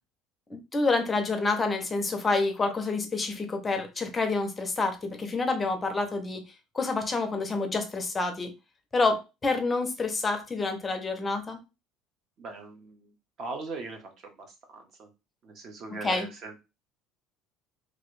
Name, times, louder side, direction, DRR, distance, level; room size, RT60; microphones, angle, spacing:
voice 1, 0.5-6.4 6.7-8.5 8.9-11.6 16.0-16.3, left 3 dB, 15° left, 0.6 m, -28 dB
voice 2, 12.4-15.1 15.4-16.6, right 3 dB, 40° right, 0.8 m, -40 dB
3.0 x 2.5 x 3.1 m
cardioid pair, 160°, 0 cm